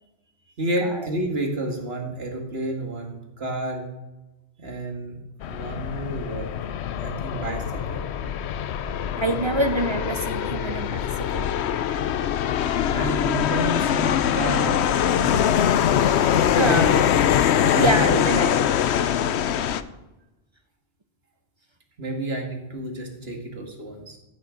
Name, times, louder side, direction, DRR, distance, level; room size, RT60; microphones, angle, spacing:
voice 1, 0.6-3.9 4.6-5.2 5.5-6.5 7.0-8.0 12.9-14.8 15.1-15.6 16.5-17.2 17.5-18.5 22.0-24.2, right 1 dB, 70° right, 2 dB, 2.3 m, -30 dB
sound 1, 5.4-19.8, left 9 dB, 85° left, 0.9 m, -23 dB
voice 2, 9.2-11.5 16.5-16.9 17.8-18.6, right 2 dB, 35° right, 10 dB, 0.5 m, -26 dB
13.5 x 6.5 x 6.4 m, 1.0 s
omnidirectional pair, 1.1 m